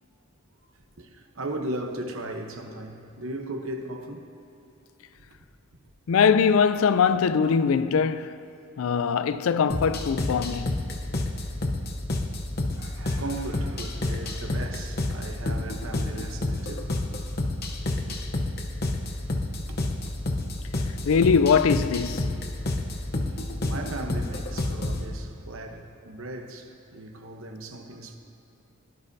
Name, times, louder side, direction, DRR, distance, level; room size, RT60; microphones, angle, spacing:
voice 1, 1.0-4.3 7.1-7.2 12.7-17.0 17.7-18.2 19.0-20.7 23.2-28.2, right 2 dB, 65° right, 1.0 m, -38 dB
voice 2, 6.1-8.3 8.8-10.7 21.0-22.3, left 6 dB, 70° left, 0.4 m, -22 dB
sound 1, 9.7-25.1, left 2 dB, 50° left, 0.8 m, -29 dB
17.5 x 11.0 x 2.7 m
head